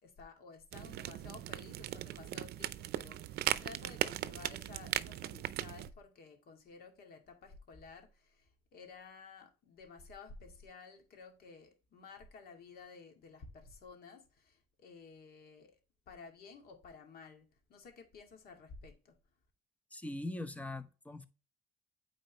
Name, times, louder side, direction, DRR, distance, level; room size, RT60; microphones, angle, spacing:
voice 1, 0.0-15.8 16.1-19.2, left 4 dB, 60° left, 2.2 m, -54 dB
sound 1, 0.7-5.9, right 14 dB, 70° right, 0.5 m, -38 dB
voice 2, 19.9-21.2, left 2 dB, 10° left, 0.8 m, -41 dB
8.9 x 4.3 x 3.0 m
cardioid pair, 110°, 17 cm